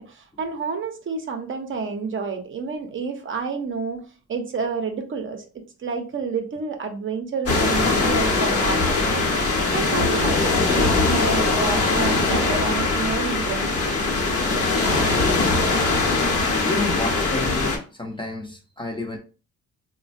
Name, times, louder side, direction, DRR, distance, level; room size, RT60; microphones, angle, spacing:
voice 1, 0.0-13.9, right 5 dB, 40° right, 0.6 m, -29 dB
sound 1, 7.5-17.8, left 3 dB, 50° left, 0.9 m, -21 dB
voice 2, 16.6-17.7 18.0-19.2, left 2 dB, 15° left, 0.5 m, -30 dB
3.1 x 2.2 x 2.5 m
cardioid pair, 90°, 30 cm